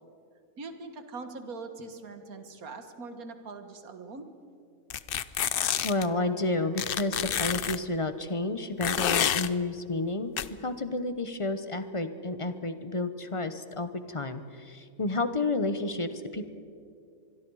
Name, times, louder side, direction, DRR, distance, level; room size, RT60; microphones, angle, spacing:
voice 1, 0.6-4.3, right 3 dB, 85° right, 7 dB, 1.9 m, -42 dB
sound 1, 4.9-6.1 6.8-7.8 8.8-9.5 10.4-10.5, left 10 dB, 55° left, 0.6 m, -28 dB
voice 2, 5.8-10.3 10.6-16.5, left 2 dB, 25° left, 10 dB, 0.8 m, -31 dB
25.5 x 22.0 x 4.8 m, 2.5 s
omnidirectional pair, 1.5 m